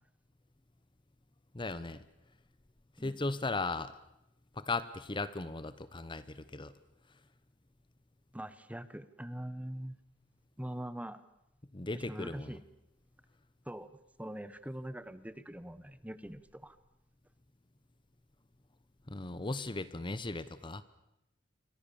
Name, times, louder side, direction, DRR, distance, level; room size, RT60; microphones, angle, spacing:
voice 1, 1.5-2.0 3.0-3.9 4.6-6.7 11.7-12.6 19.1-20.8, left 3 dB, 25° left, 15 dB, 0.8 m, -37 dB
voice 2, 8.3-9.9 10.6-11.2 11.9-12.6 13.6-13.9 14.2-16.8, right 1 dB, 5° right, 14 dB, 1.1 m, -43 dB
27.5 x 23.5 x 7.0 m, 0.86 s
head